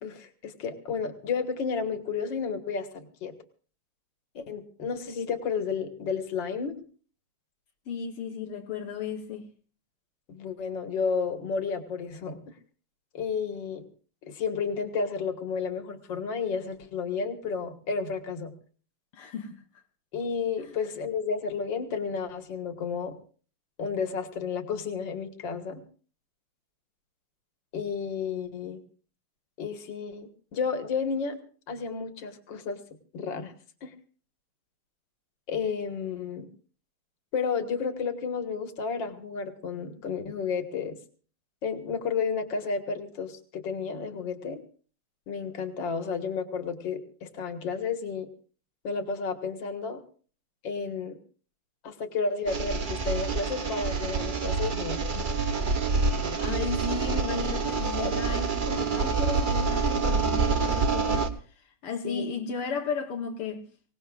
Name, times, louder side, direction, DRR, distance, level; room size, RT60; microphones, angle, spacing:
voice 1, 0.0-3.3 4.4-6.7 10.3-12.5 13.1-13.9 14.3-18.5 20.1-23.2 23.8-25.8 27.7-28.8 29.6-31.4 31.7-32.8 33.1-33.5 33.8-33.9 35.5-36.5 37.3-41.0 41.6-44.6 45.3-48.3 48.8-50.0 50.6-51.2 51.8-55.3 58.0-58.2 62.0-62.3, left 5 dB, 60° left, 2.2 m, -32 dB
voice 2, 7.9-9.5 19.1-19.6 20.6-20.7 56.4-63.7, left 5 dB, 80° left, 2.1 m, -34 dB
sound 1, 52.5-61.3, right 4 dB, 80° right, 0.4 m, -27 dB
25.0 x 18.5 x 2.4 m
omnidirectional pair, 2.4 m